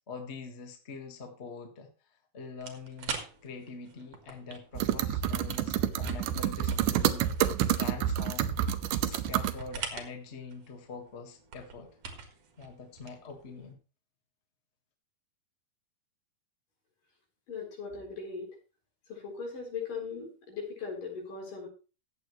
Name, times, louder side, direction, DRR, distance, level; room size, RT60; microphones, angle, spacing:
voice 1, 0.0-1.9 2.3-3.1 3.4-8.5 9.0-11.9 12.6-13.8, left 4 dB, 45° left, 4 dB, 0.8 m, -44 dB
sound 1, 2.6-13.7, right 5 dB, 55° right, 2.3 m, -45 dB
sound 2, 4.8-9.6, right 11 dB, 75° right, 2.1 m, -28 dB
voice 2, 17.5-18.5 19.1-21.7, left 5 dB, 65° left, -1 dB, 5.9 m, -39 dB
15.0 x 9.0 x 3.1 m, 0.33 s
omnidirectional pair, 4.1 m